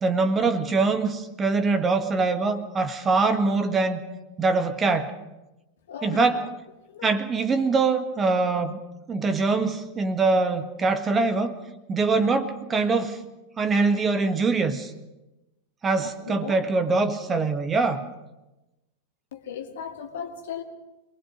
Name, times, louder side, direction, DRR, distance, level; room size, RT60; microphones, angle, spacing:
voice 1, 0.0-4.0 4.4-5.1 6.0-6.4 7.0-8.8 9.1-11.6 11.9-13.2 13.6-14.9 15.8-18.0, right 3 dB, 20° right, 9 dB, 1.6 m, -23 dB
voice 2, 5.9-6.5 6.8-7.0 16.0-16.6 19.3-20.6, left 7 dB, 60° left, 4 dB, 2.3 m, -37 dB
26.0 x 20.0 x 5.2 m, 1.0 s
figure-of-eight pair, 90°, 0 cm